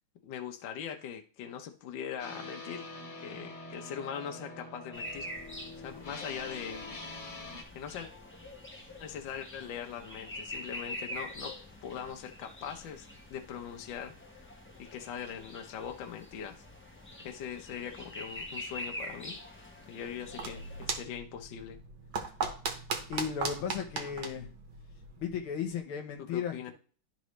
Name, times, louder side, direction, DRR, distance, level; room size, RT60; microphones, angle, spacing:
voice 1, 0.2-2.8 3.2-5.3 5.8-6.9 7.7-8.1 9.0-11.6 11.8-14.4 14.8-16.6 17.2-19.4 19.9-21.8 26.2-26.7, left 8 dB, 65° left, 3 dB, 1.5 m, -41 dB
sound 1, 2.2-7.6, left 2 dB, 35° left, 1.6 m, -45 dB
sound 2, 4.9-20.9, left 1 dB, 10° left, 0.5 m, -45 dB
sound 3, 20.0-25.4, right 5 dB, 55° right, 1.5 m, -38 dB
voice 2, 23.1-24.5 25.2-26.7, left 7 dB, 80° left, 4 dB, 1.9 m, -35 dB
12.0 x 4.0 x 3.2 m, 0.40 s
omnidirectional pair, 2.3 m